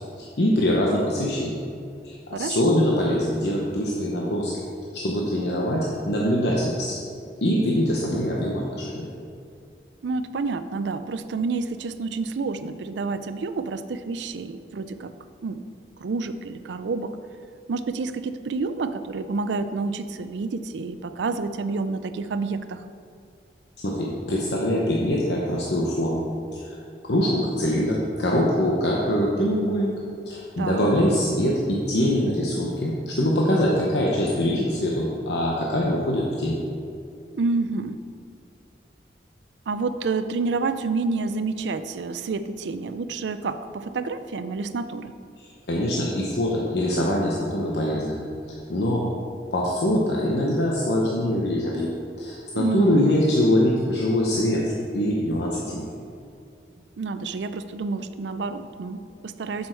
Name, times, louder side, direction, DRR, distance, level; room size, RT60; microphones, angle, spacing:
voice 1, 0.0-1.5 2.0-4.5 4.9-6.9 7.4-9.1 23.8-26.2 26.5-26.8 27.1-29.9 30.3-36.6 45.4-48.2 48.5-49.1 49.5-51.9 52.2-55.9, equal, 75° left, -3 dB, 0.9 m, -23 dB
voice 2, 2.3-2.8 10.0-15.1 15.4-15.6 16.0-17.1 17.7-22.8 30.6-30.9 37.3-38.0 39.7-45.2 52.5-53.2 57.0-59.7, right 4 dB, 90° right, 11 dB, 0.4 m, -29 dB
7.7 x 7.1 x 4.5 m, 2.4 s
head